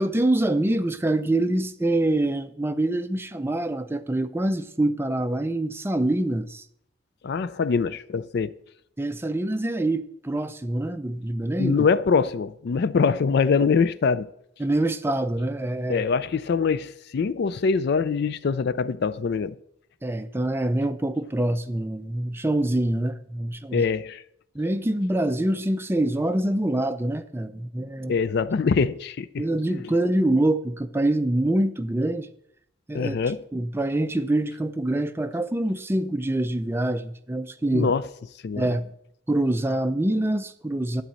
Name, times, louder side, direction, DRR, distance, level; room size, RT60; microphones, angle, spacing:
voice 1, 0.0-6.6 9.0-11.9 14.6-16.0 20.0-23.8 24.5-28.1 29.4-32.3 32.9-33.2 33.5-37.9 38.6-38.9 39.3-41.0, right 1 dB, 10° right, 0.4 m, -25 dB
voice 2, 7.2-8.5 11.6-14.3 15.9-19.6 23.7-24.2 28.1-29.9 32.9-33.4 37.7-38.0 38.4-38.7, left 5 dB, 55° left, 0.4 m, -24 dB
11.5 x 4.1 x 7.5 m
head